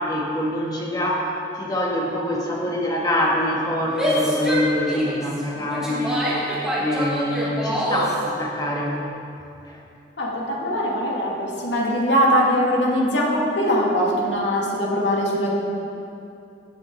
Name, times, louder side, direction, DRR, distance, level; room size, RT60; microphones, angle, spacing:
voice 1, 0.0-6.3 6.8-9.0 9.7-9.8, left 1 dB, 20° left, -3 dB, 1.6 m, -25 dB
Female speech woman speaking / Yell, 3.9-8.2, equal, 5° right, 1.8 m, -25 dB
voice 2, 10.2-15.5, equal, 85° left, -3 dB, 2.3 m, -21 dB
17.0 x 7.7 x 4.1 m, 2.7 s
head